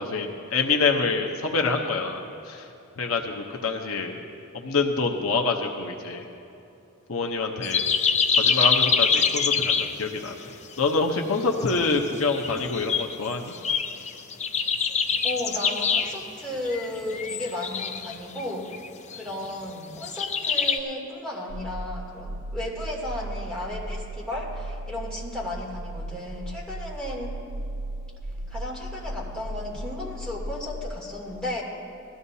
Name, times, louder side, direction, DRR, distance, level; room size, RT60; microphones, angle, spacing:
voice 1, 0.0-2.2 2.5-2.7 3.0-4.2 4.5-6.2 7.1-7.8 8.4-10.3 10.8-13.5, left 4 dB, 75° left, 2 dB, 0.9 m, -26 dB
sound 1, 7.6-10.0 10.3-10.4 10.7-10.8 11.6-13.2 13.5-16.3 16.6-18.4 18.7-19.5 19.9-20.8, left 6 dB, 35° left, 0.6 m, -25 dB
voice 2, 15.2-18.8 19.1-27.4 28.5-31.6, left 1 dB, 5° left, -6 dB, 2.8 m, -34 dB
sound 2, 21.5-30.9, right 1 dB, 80° right, 0.7 m, -36 dB
20.0 x 14.5 x 2.8 m, 2.8 s
head